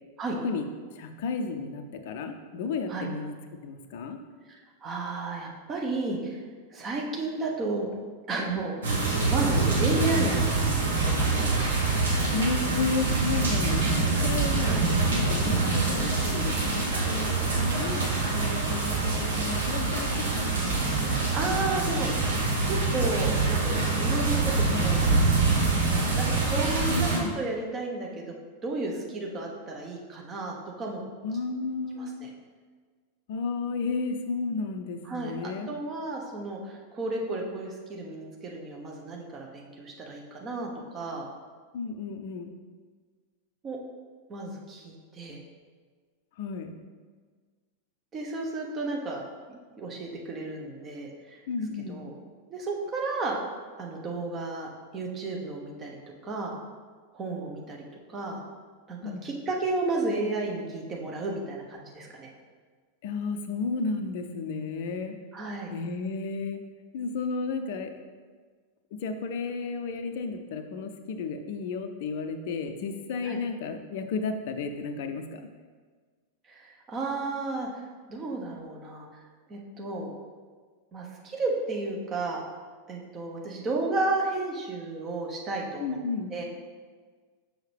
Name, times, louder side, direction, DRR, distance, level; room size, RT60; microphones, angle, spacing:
voice 1, 1.0-3.3 3.6-4.2 12.3-14.8 15.1-20.8 26.9-27.4 31.2-32.1 33.3-35.7 41.7-42.5 46.4-46.7 51.5-52.1 59.0-59.3 63.0-65.2 65.7-66.6 66.9-67.9 69.0-75.4 85.8-86.3, left 4 dB, 50° left, 7 dB, 0.6 m, -33 dB
voice 2, 4.5-6.4 6.7-7.9 8.3-8.7 9.3-10.7 11.0-11.4 14.6-14.9 21.3-22.3 22.7-28.3 28.6-31.0 31.9-32.3 35.0-41.3 43.6-43.8 44.3-45.4 48.1-51.4 51.9-52.1 52.5-53.4 53.8-56.6 57.1-58.4 58.9-62.3 65.3-65.7 73.2-73.4 76.5-77.8 78.1-79.1 79.5-80.1 80.9-82.4 82.9-86.0 86.3-86.4, right 2 dB, 25° right, -1 dB, 1.2 m, -33 dB
sound 1, 8.8-27.2, right 3 dB, 65° right, 1.4 m, -25 dB
6.4 x 6.2 x 3.4 m, 1.5 s
figure-of-eight pair, 90°, 0 cm